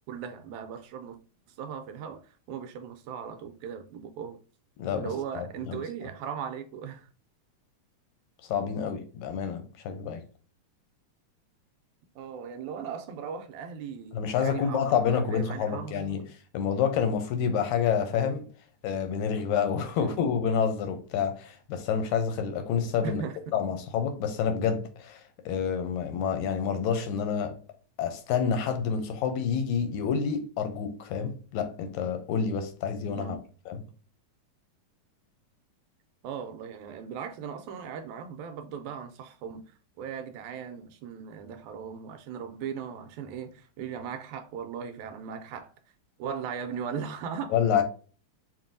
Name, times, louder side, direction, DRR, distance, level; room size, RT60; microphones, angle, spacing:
voice 1, 0.1-1.2 1.6-4.4 5.0-7.1 12.2-16.2 20.0-20.2 23.0-23.4 33.2-33.4 36.2-45.7 46.2-47.6, right 7 dB, 80° right, 1.9 m, -38 dB
voice 2, 4.8-5.8 8.4-10.2 14.1-16.2 16.5-18.5 18.8-23.2 23.5-27.6 28.0-33.4 33.7-33.8 47.5-47.8, left 7 dB, 80° left, 1.9 m, -28 dB
5.5 x 2.6 x 2.5 m
omnidirectional pair, 3.6 m